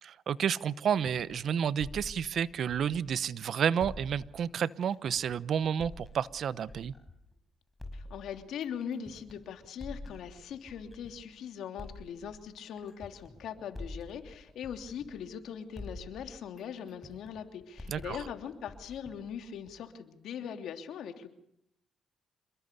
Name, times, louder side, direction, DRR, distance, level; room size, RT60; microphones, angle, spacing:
voice 1, 0.0-6.9 17.9-18.2, right 8 dB, 60° right, 17 dB, 0.9 m, -30 dB
sound 1, 0.9-3.4 3.8-7.3 7.8-11.3 11.8-15.5 15.8-19.8, left 2 dB, 10° left, 5.5 m, -47 dB
voice 2, 7.9-21.3, left 8 dB, 75° left, 6 dB, 3.0 m, -41 dB
27.5 x 21.0 x 6.8 m, 0.76 s
cardioid pair, 90°, 0 cm